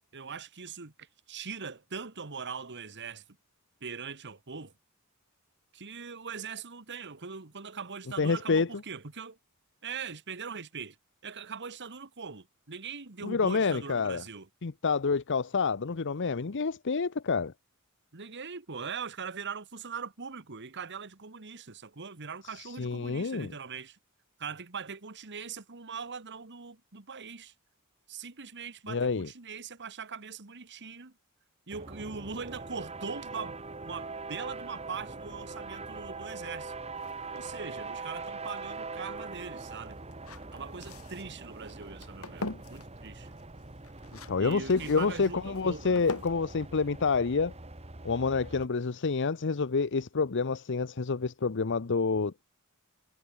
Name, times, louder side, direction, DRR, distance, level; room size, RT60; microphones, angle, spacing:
voice 1, 0.1-3.2 3.8-4.7 5.7-9.4 9.8-11.0 11.2-14.5 18.1-24.0 24.4-27.5 28.1-31.1 31.7-33.6 33.8-36.7 37.3-40.0 40.5-43.3 44.4-46.2, right 5 dB, 55° right, 1.7 m, -41 dB
voice 2, 8.2-8.7 13.2-14.2 14.6-17.5 22.6-23.5 28.9-29.3 44.3-47.5 48.0-52.3, left 4 dB, 55° left, 0.7 m, -28 dB
sound 1, 31.7-48.7, right 3 dB, 30° right, 2.2 m, -43 dB
sound 2, 37.0-47.8, left 2 dB, 70° left, 4.4 m, -45 dB
head